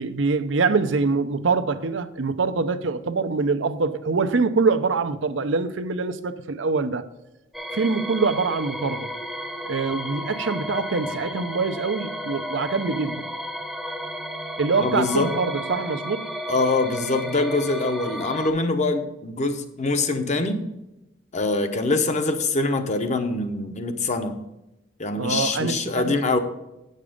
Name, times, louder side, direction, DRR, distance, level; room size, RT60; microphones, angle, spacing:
voice 1, 0.0-7.0 7.7-9.1 9.6-13.3 14.6-16.2 25.2-26.1, right 4 dB, 85° right, 0.6 m, -24 dB
sound 1, 7.5-18.5, equal, ahead, 0.8 m, -33 dB
voice 2, 14.8-15.3 16.5-20.6 21.3-24.4 25.0-26.4, left 3 dB, 40° left, 0.9 m, -24 dB
8.5 x 6.6 x 5.0 m
head